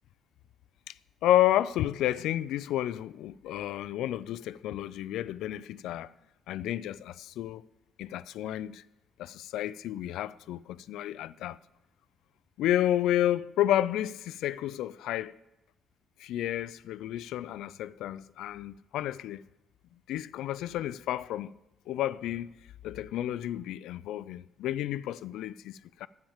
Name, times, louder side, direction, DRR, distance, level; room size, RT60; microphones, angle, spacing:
voice 1, 1.2-6.1 6.5-7.6 8.0-8.8 9.2-11.6 12.6-15.3 16.2-19.4 20.1-21.5 21.9-26.1, left 13 dB, 90° left, 0.3 m, -31 dB
10.5 x 8.7 x 7.2 m
cardioid pair, 90°, 0 cm